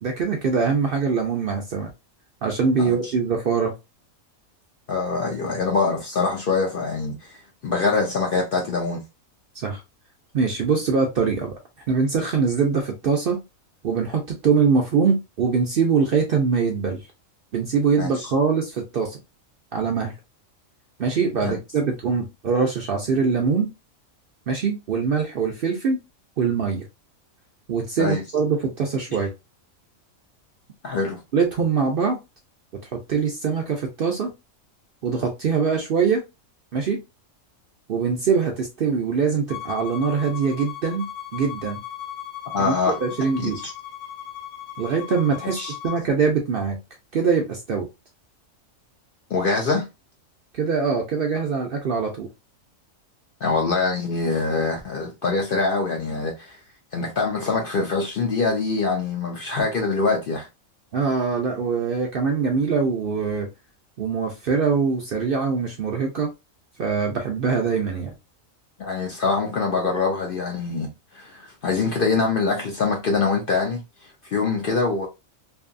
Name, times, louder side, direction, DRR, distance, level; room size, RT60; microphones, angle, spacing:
voice 1, 0.0-1.9 2.4-3.7 9.6-9.8 10.3-11.5 11.9-13.4 13.8-17.0 17.5-19.2 19.7-20.1 21.0-23.7 24.5-26.0 26.4-26.8 27.7-29.3 31.3-32.2 33.1-34.3 35.0-36.2 36.7-37.0 37.9-41.8 42.6-42.7 43.0-43.6 44.8-45.6 45.8-46.8 47.1-47.9 50.5-52.3 60.9-63.5 64.0-66.3 66.8-68.1, right 5 dB, 60° right, 0.6 m, -23 dB
voice 2, 2.8-3.1 4.9-9.0 18.0-18.3 21.4-21.6 28.0-28.2 30.8-31.2 42.5-43.0 43.4-43.7 45.5-45.7 49.3-49.9 53.4-56.6 56.9-60.5 68.8-70.9 71.1-75.1, left 4 dB, 60° left, 0.6 m, -24 dB
Bowed string instrument, 39.5-46.0, left 11 dB, 90° left, 1.1 m, -37 dB
2.7 x 2.6 x 2.5 m
omnidirectional pair, 1.4 m